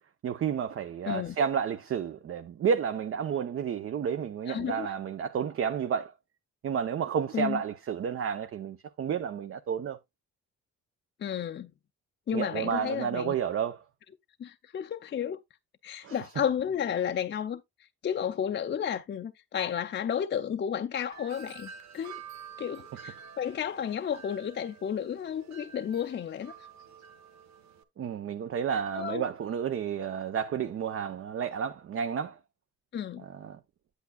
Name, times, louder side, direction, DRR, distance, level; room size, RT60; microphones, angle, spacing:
voice 1, 0.2-6.1 6.6-10.0 12.3-13.8 16.0-16.1 28.0-32.4 33.2-33.6, right 7 dB, 45° right, 0.6 m, -31 dB
voice 2, 1.1-1.4 4.5-4.9 7.3-7.6 11.2-11.7 12.3-13.3 14.4-15.4 15.8-17.6 18.0-22.2 22.6-26.7 28.7-29.2 32.9-33.2, left 8 dB, 35° left, 0.5 m, -32 dB
Wind chime, 21.1-27.8, right 7 dB, 65° right, 1.0 m, -49 dB
8.2 x 8.2 x 2.3 m
cardioid pair, 90°, 30 cm